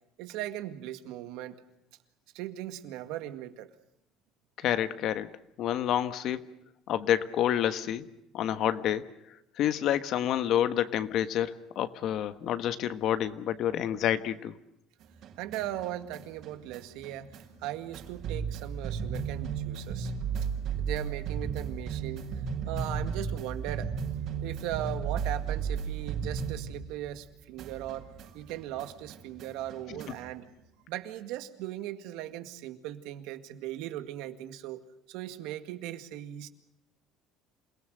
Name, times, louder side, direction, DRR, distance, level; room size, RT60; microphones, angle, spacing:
voice 1, 0.2-1.6 2.3-3.7 15.4-17.3 17.6-20.1 20.8-22.3 22.7-23.9 24.4-30.5 30.9-36.5, right 13 dB, 80° right, 10 dB, 2.0 m, -38 dB
voice 2, 4.6-5.3 5.6-6.5 6.9-8.1 8.3-9.1 9.6-14.5 29.9-30.1, left 11 dB, 55° left, 12 dB, 1.4 m, -28 dB
sound 1, 15.0-27.3 27.6-30.3, right 6 dB, 60° right, 5.9 m, -35 dB
28.0 x 18.5 x 7.8 m, 0.83 s
cardioid pair, 125°, 0 cm